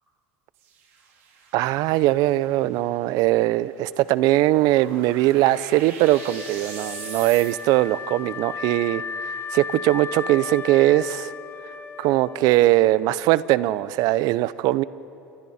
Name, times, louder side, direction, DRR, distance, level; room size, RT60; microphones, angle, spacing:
sound 1, 0.5-8.0, right 6 dB, 85° right, 3.9 m, -43 dB
voice 1, 1.5-9.0 9.5-11.3 12.0-14.8, right 16 dB, 65° right, 18 dB, 0.6 m, -20 dB
Wind instrument woodwind instrument, 6.0-13.0, left 5 dB, 30° left, 1.1 m, -35 dB
29.5 x 27.0 x 4.3 m, 2.8 s
supercardioid pair, 95°, 7 cm